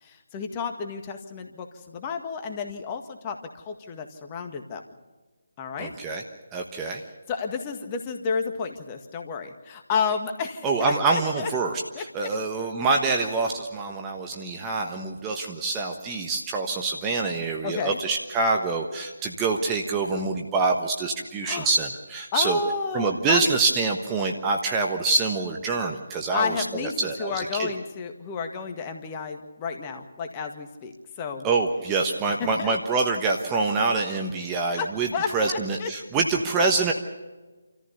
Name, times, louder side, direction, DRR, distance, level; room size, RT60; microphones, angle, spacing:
voice 1, 0.0-4.8 5.6-5.9 6.8-7.0 7.3-11.5 11.9-12.3 17.6-18.0 21.4-21.7 22.3-23.5 26.3-31.5 32.4-32.7 34.8-35.9, left 5 dB, 25° left, 5 dB, 1.8 m, -31 dB
voice 2, 5.8-6.2 6.5-7.0 10.6-22.6 22.9-27.7 31.4-35.1 35.3-36.9, right 3 dB, 15° right, 2 dB, 1.3 m, -26 dB
27.5 x 14.5 x 6.9 m, 1.2 s
figure-of-eight pair, 150°, 0 cm